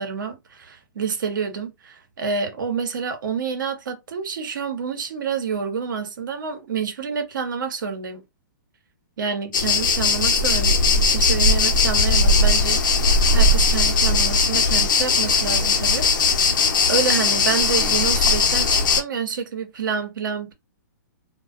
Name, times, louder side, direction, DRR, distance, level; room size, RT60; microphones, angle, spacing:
voice 1, 0.0-8.2 9.2-16.1 16.9-20.5, right 6 dB, 80° right, 0.8 m, -28 dB
sound 1, 9.5-19.0, left 3 dB, 80° left, 0.6 m, -19 dB
2.3 x 2.2 x 2.4 m
hypercardioid pair, 145°, 10 cm